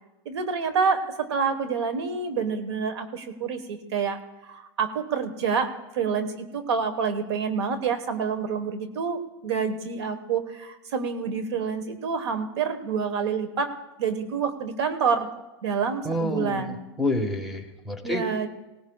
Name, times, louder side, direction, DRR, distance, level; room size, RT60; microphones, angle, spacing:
voice 1, 0.2-4.2 4.5-13.7 14.0-15.3 15.6-16.8 18.0-18.5, right 6 dB, 85° right, 9 dB, 1.4 m, -27 dB
voice 2, 16.0-18.3, left 1 dB, ahead, 6 dB, 1.4 m, -28 dB
20.0 x 18.0 x 2.4 m, 1.0 s
supercardioid pair, 140°, 14 cm